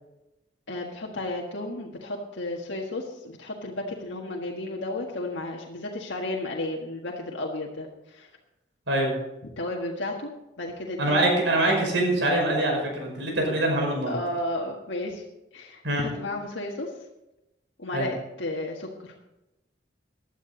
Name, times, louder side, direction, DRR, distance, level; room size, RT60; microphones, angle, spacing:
voice 1, 0.7-8.3 9.4-10.3 10.6-11.6 14.1-15.2 15.5-16.9 17.8-19.1, left 2 dB, 85° left, -1 dB, 1.7 m, -33 dB
voice 2, 11.0-14.1 15.8-16.0 17.9-18.1, right 1 dB, 85° right, 0 dB, 5.4 m, -24 dB
16.5 x 11.5 x 4.0 m, 0.94 s
head